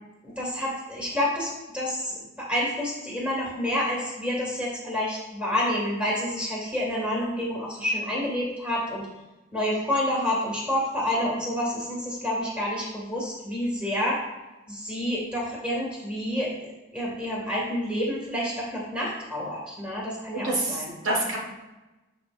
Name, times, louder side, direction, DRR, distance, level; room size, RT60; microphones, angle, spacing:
voice 1, 0.2-9.1 9.5-14.2 14.7-20.9, left 1 dB, 5° right, -5 dB, 2.2 m, -28 dB
voice 2, 20.3-21.4, right 2 dB, 75° right, -1 dB, 1.8 m, -27 dB
12.5 x 4.7 x 2.6 m, 1.1 s
head